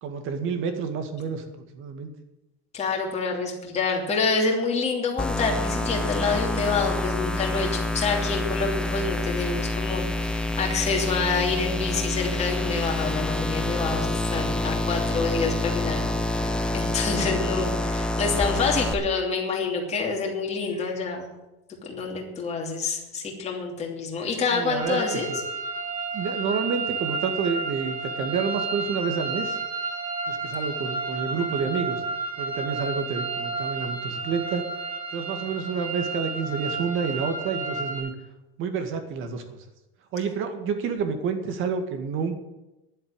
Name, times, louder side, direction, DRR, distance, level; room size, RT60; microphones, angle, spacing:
voice 1, 0.0-2.1 24.5-25.4 26.1-29.6 30.3-32.0 32.4-34.7 35.1-38.1 38.6-39.6 40.1-42.4, right 6 dB, 45° right, 7 dB, 2.0 m, -29 dB
voice 2, 2.7-21.3 21.8-25.3, left 4 dB, 20° left, 0 dB, 2.9 m, -27 dB
sound 1, 5.2-18.9, left 2 dB, 5° left, 0.7 m, -27 dB
sound 2, 24.8-38.0, right 3 dB, 70° right, 6.5 m, -31 dB
11.0 x 7.9 x 9.7 m, 0.98 s
cardioid pair, 165°, 30 cm